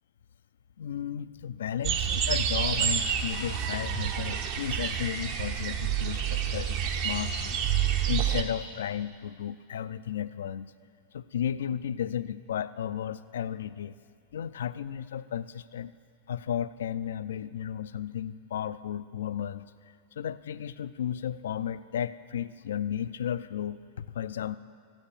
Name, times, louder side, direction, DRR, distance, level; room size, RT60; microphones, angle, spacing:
voice 1, 0.8-7.6 8.1-10.7 11.1-14.0 14.3-15.9 16.3-19.7 20.2-24.6, left 9 dB, 65° left, 15 dB, 0.4 m, -34 dB
sound 1, 1.8-8.4, right 8 dB, 45° right, 1.0 m, -28 dB
14.5 x 9.1 x 7.3 m, 2.2 s
figure-of-eight pair, 90°, 0 cm